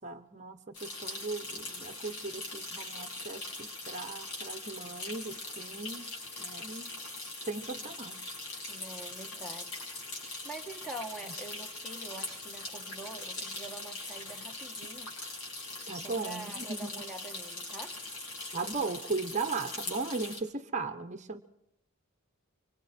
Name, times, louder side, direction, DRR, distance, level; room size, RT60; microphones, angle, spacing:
voice 1, 0.0-6.1 6.4-6.9 7.4-8.3 11.2-11.3 15.9-16.9 18.5-21.4, right 3 dB, 35° right, 8 dB, 1.1 m, -37 dB
sound 1, 0.7-20.4, left 2 dB, 85° left, 7.4 m, -41 dB
voice 2, 8.7-9.8 10.1-15.1 15.9-18.0, right 2 dB, ahead, 3 dB, 1.7 m, -45 dB
26.5 x 25.0 x 4.5 m, 0.78 s
head